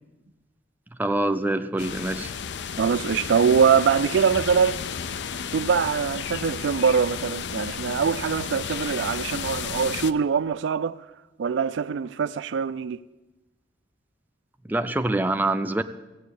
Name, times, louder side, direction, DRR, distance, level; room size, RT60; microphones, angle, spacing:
voice 1, 1.0-2.3 14.7-15.8, right 2 dB, 10° right, 0.5 m, -25 dB
sound 1, 1.8-10.1, left 7 dB, 65° left, 0.5 m, -33 dB
voice 2, 2.8-4.8 5.5-11.0 11.4-13.0, right 6 dB, 70° right, 0.4 m, -23 dB
15.0 x 8.3 x 8.3 m
head